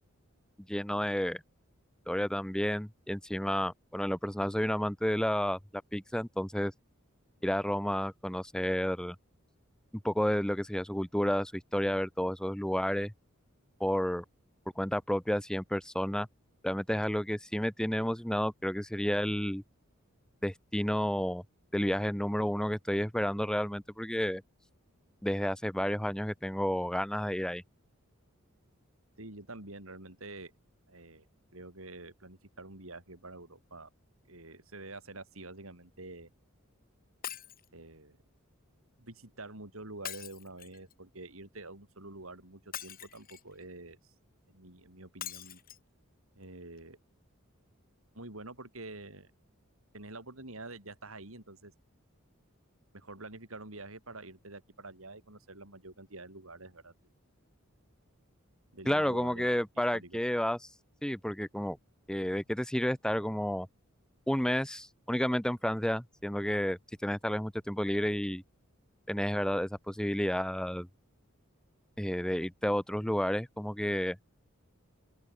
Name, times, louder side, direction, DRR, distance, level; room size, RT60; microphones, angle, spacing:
voice 1, 0.7-1.4 2.1-5.6 5.9-6.7 7.4-9.2 10.0-13.1 13.8-14.2 14.8-16.3 16.6-19.6 20.4-21.4 21.7-24.4 25.2-27.6 58.9-60.6 61.0-61.8 62.1-63.7 64.3-68.4 69.1-70.9 72.0-74.2, equal, 5° left, 0.9 m, -31 dB
voice 2, 29.2-30.5 30.9-31.2 31.5-33.9 34.2-36.3 37.7-38.2 39.0-44.1 44.5-45.6 46.3-47.0 48.1-49.3 49.9-51.7 52.9-56.9 58.7-59.6 59.9-60.2, right 2 dB, 80° right, 6.8 m, -47 dB
Shatter, 37.2-37.7 40.0-40.9 42.7-43.5 45.2-45.8 46.4-46.5 46.8-46.9, left 10 dB, 45° left, 4.3 m, -42 dB
open air
head